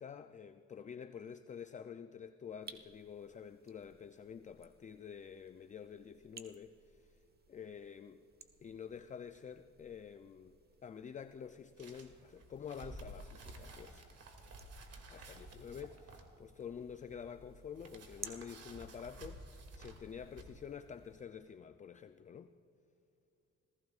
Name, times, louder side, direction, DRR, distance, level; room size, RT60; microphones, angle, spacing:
voice 1, 0.0-7.2 7.5-8.2 8.6-14.1 15.1-22.5, left 7 dB, 25° left, 11 dB, 0.4 m, -49 dB
sound 1, 2.6-21.2, right 4 dB, 30° right, 1.2 m, -59 dB
sound 2, 11.8-20.4, right 2 dB, 55° right, 2.3 m, -53 dB
28.5 x 16.0 x 2.4 m, 2.7 s
cardioid pair, 90°, 30 cm